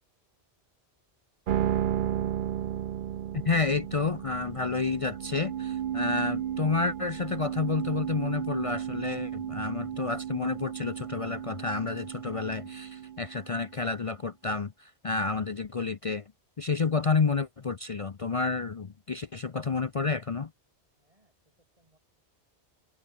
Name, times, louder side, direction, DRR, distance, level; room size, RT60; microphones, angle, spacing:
sound 1, 1.5-13.8, right 10 dB, 60° right, 0.7 m, -34 dB
voice 1, 3.5-16.2 16.6-20.5, left 4 dB, 35° left, 0.6 m, -30 dB
voice 2, 20.9-22.0, right 1 dB, 30° right, 4.7 m, -70 dB
omnidirectional pair, 1.1 m